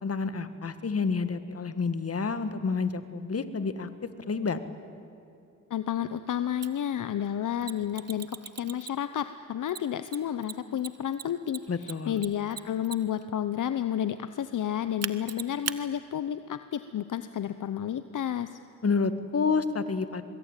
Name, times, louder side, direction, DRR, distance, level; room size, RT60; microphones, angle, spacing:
voice 1, 0.0-3.9 4.3-4.6 11.7-12.2 18.8-20.2, left 4 dB, 45° left, 11 dB, 1.8 m, -29 dB
voice 2, 5.7-18.6, left 10 dB, 70° left, 11 dB, 0.9 m, -31 dB
Mechanisms, 6.6-6.7 7.6-9.2 9.7-13.2 15.0-15.8, right 7 dB, 50° right, 1.1 m, -37 dB
25.0 x 22.0 x 9.1 m, 2.6 s
cardioid pair, 75°, 33 cm